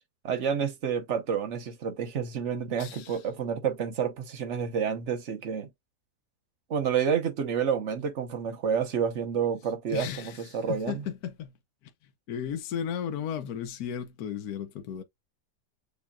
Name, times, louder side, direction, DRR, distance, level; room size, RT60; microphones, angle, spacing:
voice 1, 0.2-5.7 6.7-11.0, right 7 dB, 50° right, 1.1 m, -29 dB
voice 2, 2.8-3.2 9.9-11.5 12.3-15.0, left 8 dB, 70° left, 1.2 m, -35 dB
7.0 x 2.8 x 2.3 m
omnidirectional pair, 1.8 m